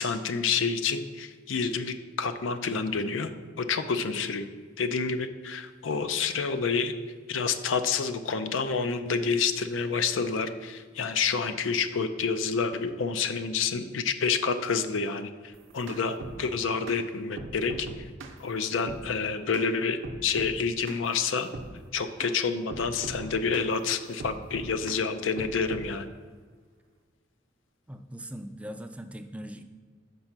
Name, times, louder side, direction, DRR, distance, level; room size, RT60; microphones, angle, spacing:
voice 1, 0.0-3.3 3.6-4.5 4.8-6.9 7.3-18.0 18.4-21.5 21.9-26.1, left 5 dB, 75° left, 10 dB, 0.5 m, -28 dB
sound 1, 15.5-16.4 16.9-17.0 17.4-18.4 18.9-19.1 19.5-19.7 20.0-20.6 20.9-21.0 21.5-21.7 22.2-22.3 22.7-23.7 24.2-25.0 25.4-25.9, right 2 dB, 70° right, 0.7 m, -40 dB
voice 2, 27.9-29.6, equal, 5° right, 7 dB, 0.3 m, -40 dB
5.3 x 4.4 x 5.9 m, 1.6 s
head